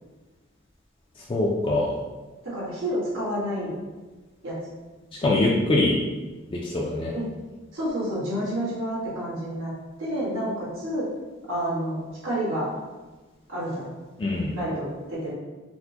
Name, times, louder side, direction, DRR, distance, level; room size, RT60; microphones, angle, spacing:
voice 1, 1.3-1.9 5.2-5.9 6.5-7.1 14.2-14.5, left 2 dB, 25° left, -3 dB, 0.3 m, -23 dB
voice 2, 2.4-3.7 4.4-4.6 7.1-7.3 7.7-9.7 10.0-11.1 11.5-12.7 13.5-13.9 14.5-15.3, equal, 80° right, -8 dB, 1.5 m, -29 dB
4.2 x 2.1 x 2.8 m, 1.2 s
head